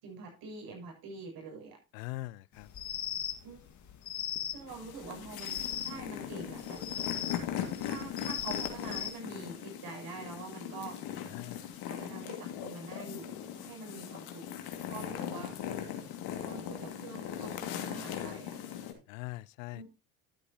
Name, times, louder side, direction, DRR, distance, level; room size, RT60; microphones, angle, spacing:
voice 1, 0.0-1.8 3.4-3.6 4.5-6.8 7.8-11.0 11.9-14.5 14.9-15.6 16.4-18.6 19.7-19.9, right 4 dB, 60° right, 7.4 m, -45 dB
voice 2, 1.9-2.7 11.3-11.7 19.1-19.8, left 19 dB, 80° left, 0.5 m, -41 dB
sound 1, 2.5-9.1, left 9 dB, 45° left, 1.9 m, -38 dB
sound 2, 4.7-18.9, left 9 dB, 65° left, 2.4 m, -39 dB
12.0 x 9.5 x 2.9 m
hypercardioid pair, 70°, 40 cm